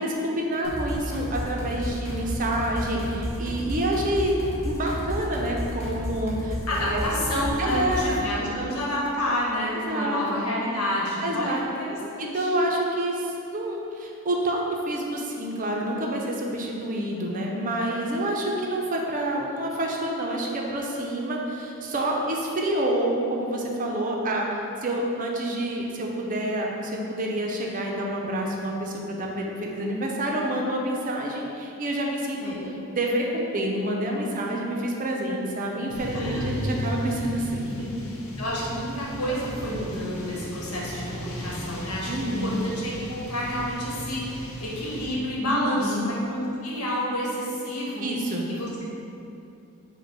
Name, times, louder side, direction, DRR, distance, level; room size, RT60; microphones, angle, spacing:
voice 1, 0.0-4.4 4.6-7.0 7.6-8.8 9.7-10.2 11.2-11.6 12.2-32.5 32.9-38.0 42.1-42.6 45.4-46.1 48.0-48.4, right 1 dB, 35° right, -1 dB, 0.5 m, -28 dB
sound 1, 0.6-8.2, equal, 30° left, 0.8 m, -32 dB
voice 2, 6.7-12.5 18.0-18.3 32.4-32.7 36.1-36.5 38.4-48.0 48.5-48.8, equal, 85° left, -5 dB, 1.0 m, -29 dB
sound 2, 35.9-45.1, equal, 65° left, 0.7 m, -35 dB
5.0 x 2.2 x 4.7 m, 2.7 s
head